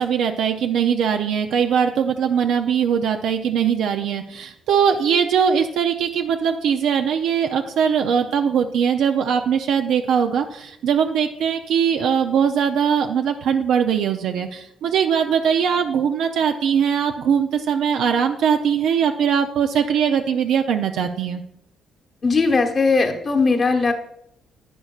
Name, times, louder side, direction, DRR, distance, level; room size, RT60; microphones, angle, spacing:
voice 1, 0.0-21.4, right 7 dB, 80° right, 5 dB, 0.5 m, -21 dB
voice 2, 22.2-23.9, left 4 dB, 40° left, 3 dB, 1.2 m, -18 dB
11.0 x 8.8 x 2.4 m, 0.78 s
cardioid pair, 90°, 0 cm